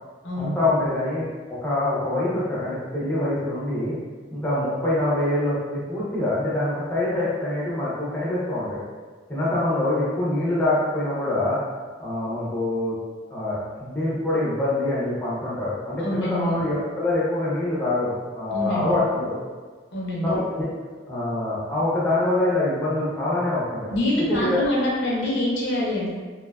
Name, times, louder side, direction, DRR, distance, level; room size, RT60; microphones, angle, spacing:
voice 1, 0.4-3.9 4.3-8.8 9.3-11.6 12.0-12.9 13.3-19.4 20.2-20.7 21.1-23.9 24.3-24.6, left 1 dB, 10° left, -8 dB, 0.5 m, -25 dB
voice 2, 16.0-16.6 18.5-19.0 19.9-20.3 23.9-26.1, left 1 dB, 75° left, -5 dB, 0.6 m, -25 dB
2.6 x 2.3 x 2.2 m, 1.4 s
head